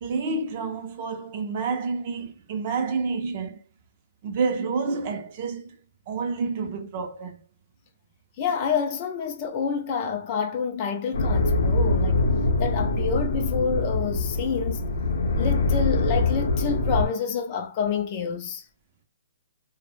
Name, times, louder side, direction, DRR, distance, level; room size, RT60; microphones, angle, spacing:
voice 1, 0.0-3.6 4.2-5.8 6.1-7.4, right 4 dB, 35° right, 0.4 m, -29 dB
voice 2, 8.4-12.2 12.6-14.9 15.4-18.7, left 6 dB, 30° left, 0.3 m, -28 dB
sound 1, 11.1-17.1, left 2 dB, 65° left, 0.6 m, -24 dB
2.0 x 2.0 x 3.0 m
hypercardioid pair, 165°, 0 cm